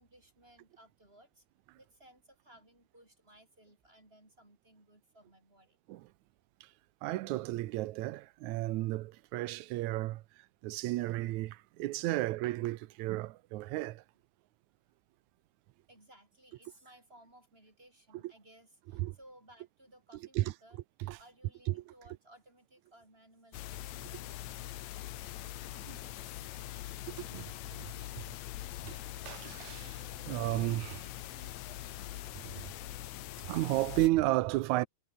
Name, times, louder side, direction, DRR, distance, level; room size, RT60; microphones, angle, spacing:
voice 1, 0.0-1.5 1.7-5.8 6.7-6.8 15.9-24.5 33.0-33.1, right 1 dB, 20° right, 5.5 m, -60 dB
voice 2, 7.0-10.2 10.6-14.0 19.0-19.1 20.4-20.5 21.0-21.2 21.7-21.8 25.7-26.0 27.1-28.2 28.8-29.0 29.2-31.1 32.4-32.7 33.4-34.9, right 17 dB, 85° right, 2.1 m, -33 dB
sound 1, 23.5-34.1, left 14 dB, 75° left, 2.2 m, -43 dB
omnidirectional pair, 3.3 m